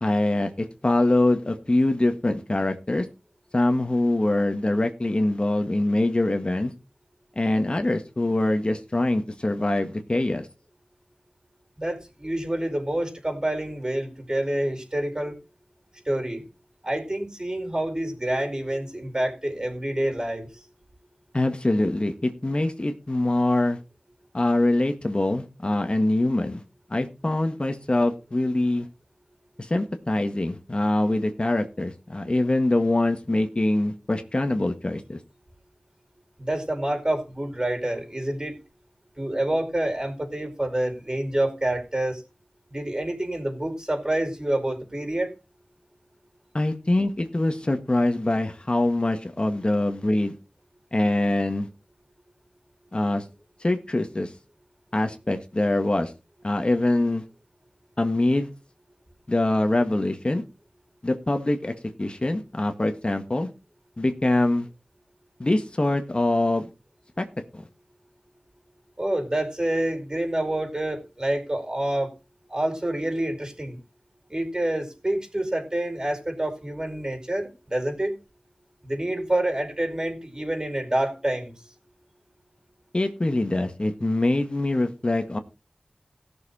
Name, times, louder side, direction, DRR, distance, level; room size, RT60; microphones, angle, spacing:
voice 1, 0.0-3.1 3.5-6.7 7.3-10.5 21.3-23.8 24.3-26.6 26.9-28.9 29.6-35.2 46.5-50.4 50.9-51.7 52.9-53.2 53.6-54.3 54.9-56.1 56.4-57.2 58.0-58.5 59.3-60.4 61.0-61.7 62.0-63.5 64.0-64.7 65.4-66.7 67.2-67.3 67.5-67.6 82.9-85.4, left 2 dB, 40° left, 1.7 m, -24 dB
voice 2, 11.8-15.4 16.0-16.5 16.8-20.5 36.4-38.6 39.2-42.2 42.7-45.3 69.0-72.1 72.5-73.8 74.3-78.1 78.8-81.5, right 1 dB, 30° right, 5.0 m, -27 dB
17.0 x 6.9 x 4.3 m
wide cardioid pair, 45°, 3 cm